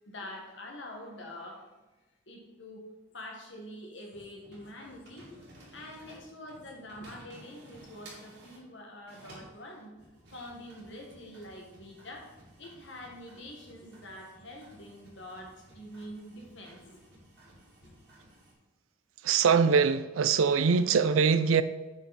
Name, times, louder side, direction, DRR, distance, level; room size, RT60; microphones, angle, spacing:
voice 1, 0.1-1.6 2.3-2.8 3.1-5.4 5.7-9.9 10.3-12.3 12.6-17.1 17.8-18.0, left 1 dB, 65° left, 1.7 m, -45 dB
sound 1, 4.1-8.7 9.0-18.5, right 1 dB, 55° right, 2.6 m, -55 dB
voice 2, 19.2-21.6, right 5 dB, 85° right, 0.5 m, -23 dB
7.8 x 5.8 x 4.2 m
head